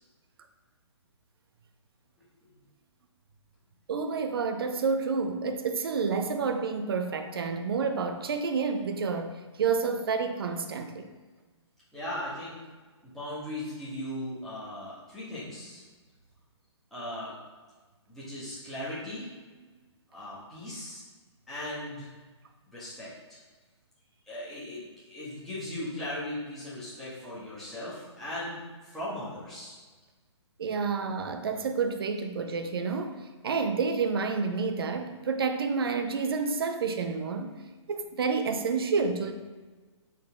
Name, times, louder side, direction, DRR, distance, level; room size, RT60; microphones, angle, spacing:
voice 1, 2.2-2.6 11.9-12.5 13.0-15.8 16.9-17.3 18.1-19.3 20.1-21.0 21.5-22.1 22.7-23.4 24.2-29.8, left 1 dB, ahead, -12 dB, 1.5 m, -38 dB
voice 2, 3.9-9.3 9.6-11.1 30.6-37.6 37.9-39.3, right 5 dB, 50° right, 7 dB, 0.6 m, -29 dB
8.7 x 4.1 x 3.6 m, 1.3 s
hypercardioid pair, 165°, 15 cm